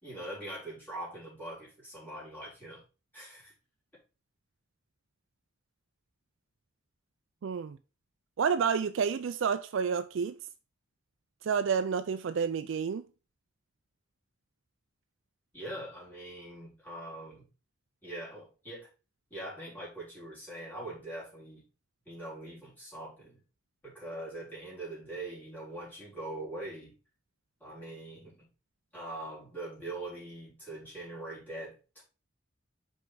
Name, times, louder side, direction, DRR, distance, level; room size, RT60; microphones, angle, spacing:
voice 1, 0.0-2.8 3.1-3.5 15.5-17.4 18.0-18.9 19.3-21.6 22.1-23.4 23.8-26.9 27.6-28.4 28.9-32.0, right 1 dB, 10° left, 3.7 m, -42 dB
voice 2, 7.4-7.8 8.4-10.3 11.4-13.0, right 6 dB, 65° right, 0.4 m, -29 dB
5.4 x 4.5 x 4.7 m
head